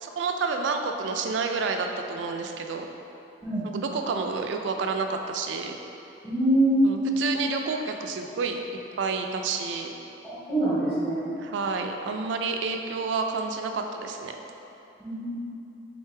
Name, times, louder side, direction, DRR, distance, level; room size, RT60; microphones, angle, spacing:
voice 1, 0.0-2.9 3.6-5.8 6.8-8.6 9.0-9.9 11.4-14.4, right 4 dB, 75° right, 4 dB, 0.3 m, -29 dB
voice 2, 6.2-6.9 10.2-11.3 15.0-15.3, right 1 dB, 30° left, -12 dB, 1.2 m, -24 dB
3.8 x 3.2 x 3.3 m, 2.9 s
head